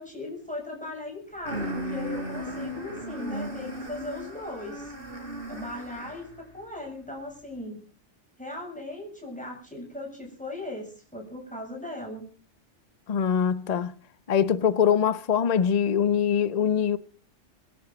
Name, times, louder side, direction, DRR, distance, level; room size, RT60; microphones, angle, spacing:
voice 1, 0.0-4.9 5.5-7.9 8.4-12.2, left 2 dB, 5° left, 7.2 m, -38 dB
sound 1, 1.5-6.4, equal, 45° right, 4.2 m, -35 dB
voice 2, 13.1-13.9 14.3-17.0, left 8 dB, 40° left, 0.8 m, -23 dB
26.5 x 11.5 x 4.0 m
omnidirectional pair, 1.3 m